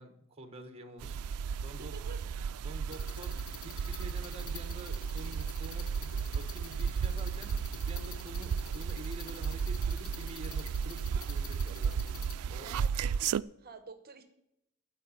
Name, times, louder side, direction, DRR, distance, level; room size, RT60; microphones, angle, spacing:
voice 1, 0.0-2.0 2.6-7.6 7.8-12.0 12.5-12.7, right 1 dB, 30° right, 7 dB, 1.3 m, -48 dB
sound 1, 1.0-13.4, right 6 dB, 85° right, 0.3 m, -34 dB
voice 2, 1.7-2.2 12.6-14.2, right 4 dB, 45° right, 10 dB, 1.0 m, -50 dB
sound 2, 2.9-12.4, left 5 dB, 85° left, 1.4 m, -49 dB
12.0 x 5.0 x 8.7 m, 0.82 s
head